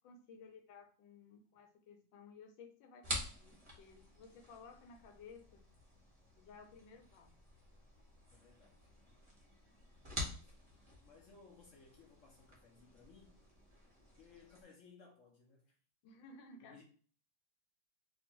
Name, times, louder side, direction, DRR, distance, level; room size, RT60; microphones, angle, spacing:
voice 1, 0.0-5.7 6.4-7.3 16.0-16.8, left 4 dB, 90° left, 1.4 m, -57 dB
sound 1, 3.0-14.6, equal, 25° right, 0.6 m, -48 dB
voice 2, 8.3-8.9 10.3-10.5 11.0-13.4 14.2-15.8 16.6-16.8, left 5 dB, 65° left, 0.8 m, -62 dB
4.3 x 2.5 x 2.9 m
omnidirectional pair, 2.0 m